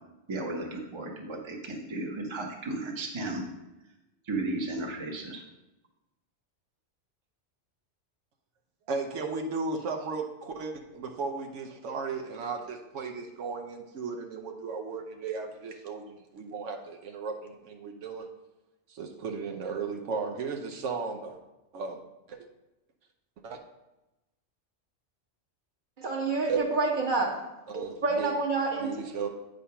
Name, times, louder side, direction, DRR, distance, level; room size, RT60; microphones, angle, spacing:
voice 1, 0.3-3.4 4.3-5.4, right 2 dB, 25° right, 1 dB, 0.9 m, -34 dB
voice 2, 8.9-18.3 18.9-21.4 21.7-22.0 22.3-22.4 23.4-23.6 26.5-26.6 27.7-28.3 28.8-29.3, right 4 dB, 80° right, 4 dB, 1.1 m, -35 dB
voice 3, 26.0-27.3 27.7-28.9, right 3 dB, 40° right, 0 dB, 1.4 m, -28 dB
8.5 x 3.8 x 5.6 m, 1.0 s
omnidirectional pair, 1.2 m